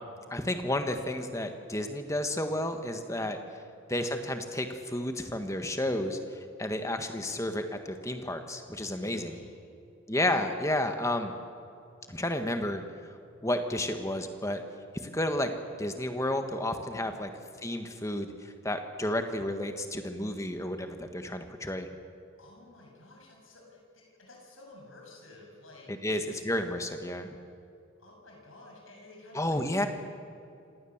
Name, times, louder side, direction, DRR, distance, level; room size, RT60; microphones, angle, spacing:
voice 1, 0.3-3.4 3.9-9.4 10.1-11.3 12.1-12.8 13.4-14.6 15.0-17.3 17.6-21.9 25.9-27.4 29.3-29.9, left 1 dB, 15° left, 6 dB, 1.5 m, -31 dB
voice 2, 8.9-9.7 16.9-17.2 22.4-25.9 28.0-29.9, left 2 dB, 75° left, 0 dB, 7.0 m, -52 dB
26.5 x 18.5 x 7.3 m, 2.6 s
head